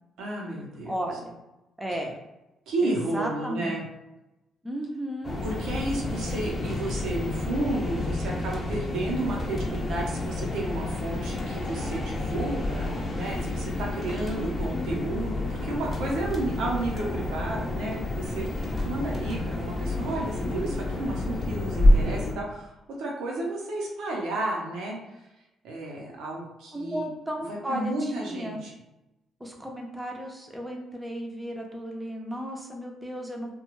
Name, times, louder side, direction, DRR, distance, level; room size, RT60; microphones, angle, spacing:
voice 1, 0.2-0.9 1.9-2.0 2.7-3.8 5.4-22.7 23.0-25.2 25.6-27.1 27.5-28.7, right 2 dB, 85° right, -2 dB, 0.8 m, -32 dB
voice 2, 0.9-1.4 1.8-2.2 2.8-3.8 4.6-5.4 14.4-15.0 26.7-28.6 29.4-33.5, equal, 10° right, 1 dB, 0.6 m, -34 dB
sound 1, 5.2-22.3, left 1 dB, 35° left, 0.6 m, -29 dB
2.4 x 2.2 x 3.1 m, 0.97 s
cardioid pair, 90°, 0 cm